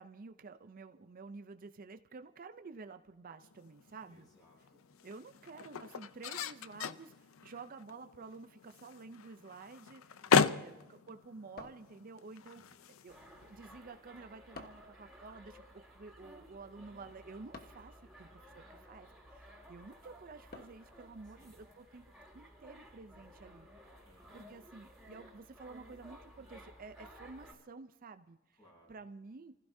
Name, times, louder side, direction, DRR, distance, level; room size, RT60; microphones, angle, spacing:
voice 1, 0.0-4.3 5.0-12.6 13.0-22.0 22.3-23.7 24.3-28.6 28.9-29.5, right 4 dB, 45° right, 9 dB, 0.5 m, -51 dB
sound 1, 3.4-13.8, left 6 dB, 80° left, 0.6 m, -37 dB
voice 2, 4.1-4.9 10.2-10.8 12.5-12.9 16.8-17.0 18.0-19.2 21.2-21.7 24.0-24.6 28.5-29.0, equal, 20° left, -1 dB, 6.9 m, -66 dB
sound 2, 11.6-12.5 14.5-15.0 17.5-17.9 20.5-21.0, left 2 dB, 45° left, 1.2 m, -51 dB
sound 3, 13.1-27.5, equal, ahead, 4.6 m, -56 dB
29.0 x 15.5 x 2.7 m, 1.1 s
head